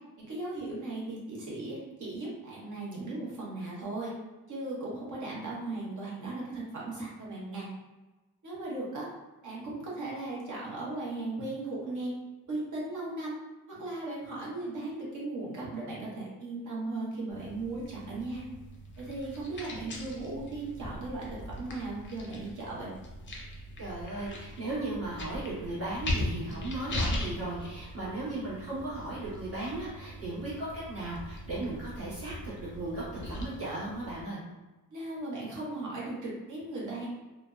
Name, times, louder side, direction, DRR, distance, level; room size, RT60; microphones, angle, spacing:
voice 1, 0.2-4.1 4.5-7.7 8.4-9.1 9.4-12.1 12.5-13.4 13.7-18.4 19.0-22.9 34.9-37.1, right 2 dB, 55° right, -5 dB, 0.9 m, -37 dB
sound 1, 17.3-34.2, left 1 dB, 35° left, 0.5 m, -40 dB
voice 2, 23.8-34.4, right 2 dB, 40° right, -10 dB, 1.3 m, -36 dB
2.6 x 2.1 x 2.3 m, 1.2 s
cardioid pair, 140°, 36 cm